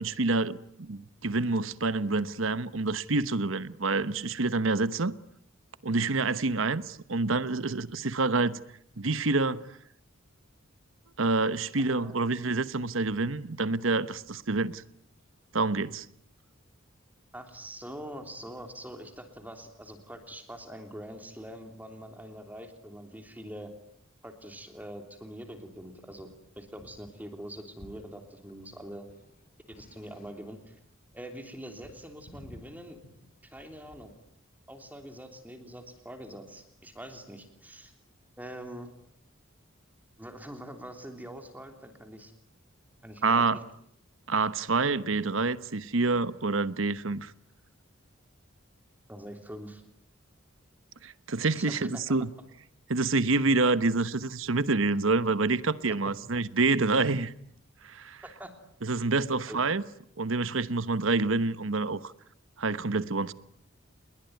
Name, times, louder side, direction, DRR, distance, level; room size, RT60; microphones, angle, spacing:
voice 1, 0.0-5.1 5.8-8.6 9.0-9.7 11.2-14.8 15.5-16.1 43.2-43.6 44.3-47.3 51.0-52.3 52.9-57.3 57.8-58.2 58.8-59.8 60.2-62.1 62.6-63.3, right 3 dB, 75° right, 1.1 m, -27 dB
voice 2, 11.9-12.3 17.3-23.7 24.2-26.3 26.6-29.1 29.7-30.8 31.1-33.0 33.5-34.1 34.7-37.9 38.4-38.9 40.2-42.3 43.0-43.6 49.1-49.8 51.6-52.0 58.2-58.5 59.5-59.6, equal, 10° right, 3.2 m, -44 dB
sound 1, 26.0-26.3 26.6-27.1 27.4-28.2 28.5-30.6 30.9-34.3, equal, 45° left, 3.1 m, -53 dB
30.0 x 21.5 x 9.4 m
head